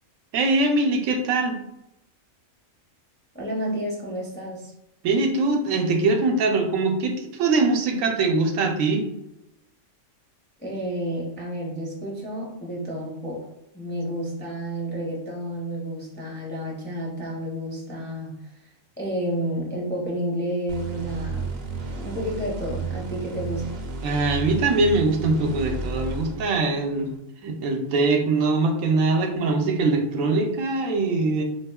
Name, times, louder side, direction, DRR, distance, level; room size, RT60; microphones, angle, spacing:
voice 1, 0.3-1.6 5.0-9.0 24.0-27.1 27.4-31.4, right 3 dB, 85° right, 4 dB, 1.0 m, -22 dB
voice 2, 3.3-4.7 10.6-13.5 13.7-18.3 19.0-21.6 22.0-23.7, equal, 15° left, -4 dB, 0.4 m, -30 dB
sound 1, 20.7-27.1, right 4 dB, 60° right, 0.7 m, -33 dB
3.5 x 2.8 x 2.2 m, 0.83 s
omnidirectional pair, 1.3 m